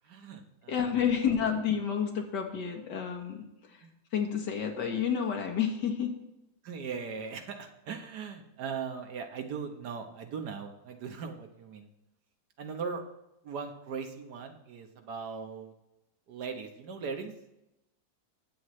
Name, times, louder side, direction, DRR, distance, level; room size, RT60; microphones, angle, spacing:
voice 1, 0.0-0.8 3.8-3.9 6.6-11.9 12.6-13.0 13.4-15.7 16.3-17.3, right 5 dB, 70° right, 5 dB, 1.6 m, -39 dB
voice 2, 0.7-3.4 3.7-3.8 4.1-6.2, left 7 dB, 80° left, 4 dB, 2.0 m, -30 dB
19.0 x 7.8 x 3.2 m, 0.91 s
omnidirectional pair, 1.8 m